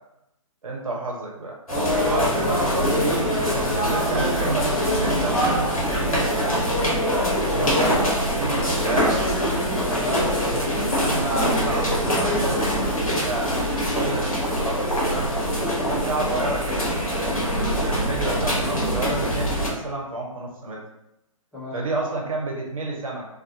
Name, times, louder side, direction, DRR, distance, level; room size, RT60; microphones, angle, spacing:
voice 1, 0.6-1.6 2.0-3.4 3.7-6.8 7.6-9.2 11.0-15.3 15.9-16.9 17.5-20.8 21.7-23.3, right 2 dB, 75° right, -1 dB, 0.6 m, -30 dB
sound 1, 1.7-19.7, equal, 80° left, 0.8 m, -23 dB
voice 2, 1.7-4.3 7.4-8.0 9.9-10.7 15.7-16.0 21.5-21.8, left 2 dB, ahead, -12 dB, 0.9 m, -31 dB
2.3 x 2.3 x 2.7 m, 0.86 s
figure-of-eight pair, 125°, 18 cm